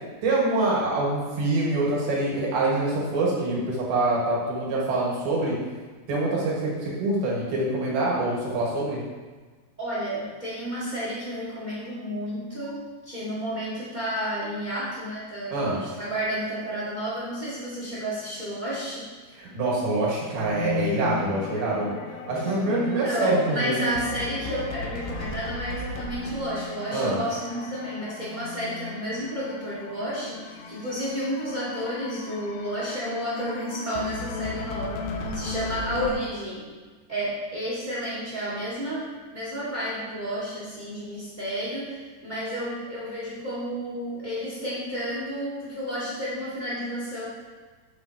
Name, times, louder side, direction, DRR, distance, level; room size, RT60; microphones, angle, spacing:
voice 1, 0.2-5.6 6.1-9.0 15.5-15.8 19.4-21.9 22.3-23.8 26.9-27.2, right 2 dB, 80° right, -5 dB, 3.7 m, -25 dB
voice 2, 9.8-19.1 22.4-36.7 37.1-47.3, equal, 25° right, -8 dB, 1.0 m, -31 dB
sound 1, 20.3-36.1, left 4 dB, 85° left, 2.7 m, -36 dB
8.1 x 7.4 x 2.9 m, 1.4 s
omnidirectional pair, 4.3 m